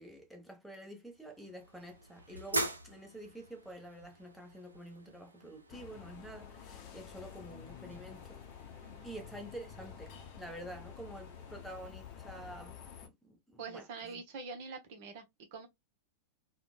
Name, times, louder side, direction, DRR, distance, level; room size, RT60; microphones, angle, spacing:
voice 1, 0.0-8.4 9.0-14.2, right 1 dB, ahead, 0.6 m, -48 dB
sound 1, 1.1-11.9, right 1 dB, 80° right, 0.5 m, -45 dB
sound 2, 5.7-13.1, left 8 dB, 40° left, 0.7 m, -50 dB
voice 2, 13.6-15.2 15.5-15.7, right 4 dB, 50° right, 0.8 m, -45 dB
3.1 x 2.1 x 2.3 m
figure-of-eight pair, 90°, 0 cm